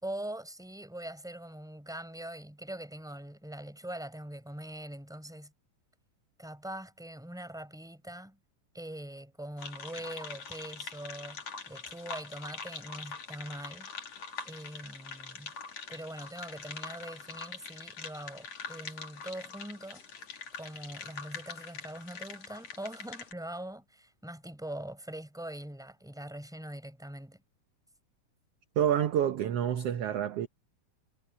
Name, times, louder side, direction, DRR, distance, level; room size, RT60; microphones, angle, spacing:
voice 1, 0.0-5.5 6.4-8.4 8.7-13.9 14.4-15.5 15.9-20.0 20.6-27.4, right 1 dB, ahead, 4.1 m, -42 dB
sound 1, 9.6-23.3, left 5 dB, 55° left, 3.8 m, -44 dB
voice 2, 28.8-30.5, right 10 dB, 65° right, 1.7 m, -28 dB
omnidirectional pair, 3.7 m